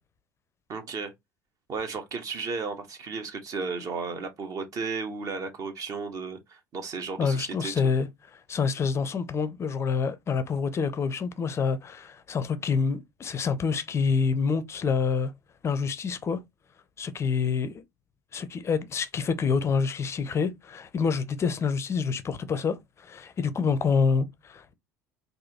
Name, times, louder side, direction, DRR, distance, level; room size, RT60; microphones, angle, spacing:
voice 1, 0.7-1.1 1.7-7.9, right 4 dB, 40° right, 1.1 m, -34 dB
voice 2, 7.2-8.1 8.5-15.3 15.6-16.4 17.0-17.7 18.3-24.7, left 5 dB, 30° left, 0.6 m, -27 dB
4.0 x 2.6 x 2.8 m
figure-of-eight pair, 65°, 9 cm